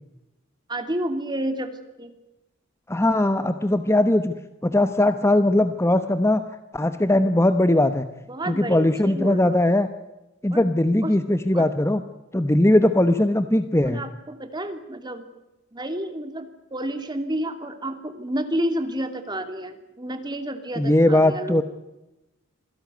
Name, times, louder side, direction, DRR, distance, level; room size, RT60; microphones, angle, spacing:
voice 1, 0.7-1.7 2.0-2.1 8.3-9.6 10.5-10.6 11.0-11.1 11.5-11.7 13.9-15.3 15.7-21.6, right 1 dB, 20° right, 8 dB, 2.7 m, -30 dB
voice 2, 2.9-4.3 4.6-6.4 6.7-8.0 8.4-9.9 10.4-12.0 12.3-14.0 20.8-21.6, left 1 dB, 15° left, 10 dB, 0.9 m, -20 dB
26.5 x 17.0 x 9.3 m, 0.96 s
head